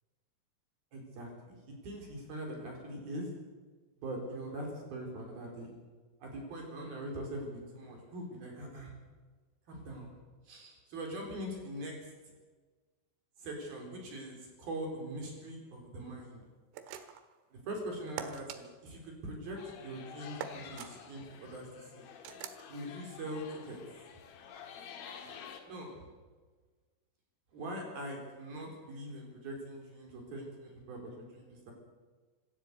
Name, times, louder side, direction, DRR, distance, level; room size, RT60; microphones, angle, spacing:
voice 1, 0.9-1.6 1.8-3.3 4.0-5.7 6.2-8.9 9.7-10.1 10.5-12.1 13.4-16.4 17.5-21.7 21.9-22.0 22.7-23.8 25.7-26.1 27.5-31.7, right 1 dB, 50° right, 1 dB, 5.6 m, -42 dB
sound 1, 16.7-17.3 18.2-18.6 20.4-20.9 22.2-22.6, right 7 dB, 85° right, 3.8 m, -43 dB
sound 2, 19.6-25.6, left 7 dB, 60° left, 3.2 m, -50 dB
25.5 x 13.0 x 8.1 m, 1.4 s
omnidirectional pair, 5.6 m